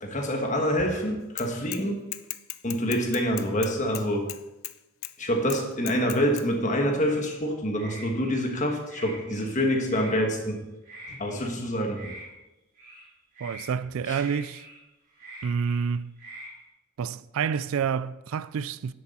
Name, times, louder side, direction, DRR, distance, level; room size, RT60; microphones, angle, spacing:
voice 1, 0.0-2.0 2.6-4.3 5.2-10.6 11.1-12.1 14.1-14.2, equal, 35° left, 1.5 m, -26 dB
Bicycle / Mechanisms, 1.4-1.8 2.1-4.7 5.0-5.1 5.5-6.5, left 17 dB, 75° left, 0.4 m, -37 dB
sound 1, 7.1-7.4 7.7-8.5 8.9-9.5 9.9-10.2 10.8-11.5 11.9-12.2 12.7-13.1 13.3-13.7 14.1-14.8 15.1-15.9 16.2-16.5, right 1 dB, 40° right, 3.7 m, -44 dB
voice 2, 13.4-14.7 15.4-16.1 17.0-18.9, right 6 dB, 75° right, 0.3 m, -28 dB
10.0 x 7.9 x 4.3 m
head